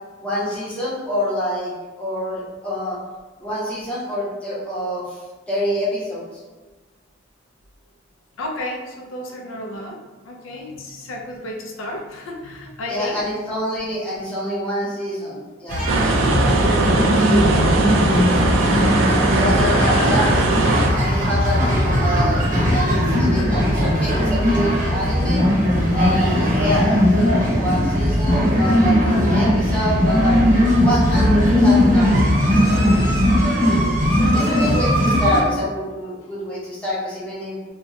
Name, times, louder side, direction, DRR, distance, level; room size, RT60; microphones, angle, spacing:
voice 1, 0.2-1.7 2.0-3.0 3.4-5.2 5.5-6.2 12.9-15.9 19.1-20.4 21.0-25.4 25.9-30.4 30.8-33.3 34.3-37.6, equal, 5° left, -8 dB, 0.7 m, -26 dB
voice 2, 8.4-10.0 10.2-13.2 17.3-20.2 34.2-34.8, left 1 dB, 85° left, 0 dB, 0.4 m, -33 dB
sound 1, 15.7-35.4, equal, 40° right, 0.7 m, -18 dB
sound 2, 15.9-20.9, right 3 dB, 80° right, 0.3 m, -20 dB
2.9 x 2.2 x 2.6 m, 1.3 s
head